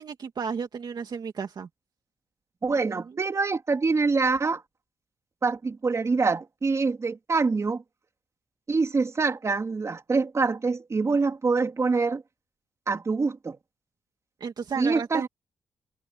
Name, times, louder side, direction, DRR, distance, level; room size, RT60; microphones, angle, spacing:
voice 1, 0.0-1.7 2.9-3.0 14.4-15.3, right 6 dB, 55° right, 2.4 m, -33 dB
voice 2, 2.6-4.6 5.4-7.8 8.7-12.2 12.9-13.6 14.8-15.3, right 4 dB, 35° right, 3.5 m, -25 dB
cardioid pair, 95°, 9 cm